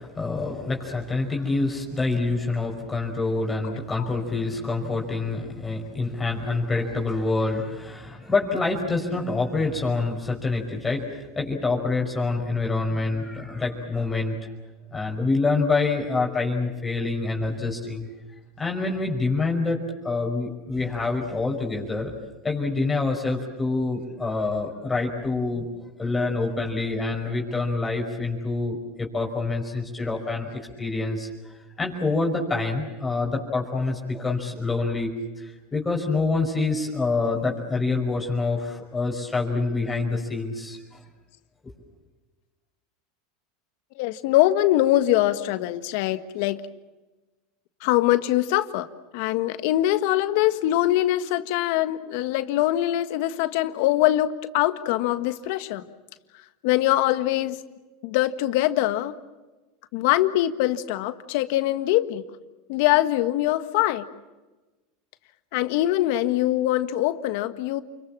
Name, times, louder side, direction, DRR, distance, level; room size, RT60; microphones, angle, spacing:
voice 1, 0.0-14.5 14.9-18.1 18.6-19.8 20.0-22.1 22.4-25.7 26.0-35.1 35.4-41.0, left 3 dB, 15° left, 5.4 m, -26 dB
voice 2, 43.9-46.6 47.8-48.9 49.1-54.3 54.5-55.8 56.6-57.6 58.0-59.1 59.9-62.2 62.7-64.1 65.5-67.8, left 15 dB, 65° left, 1.5 m, -23 dB
29.5 x 22.5 x 7.4 m
hypercardioid pair, 105°, 0 cm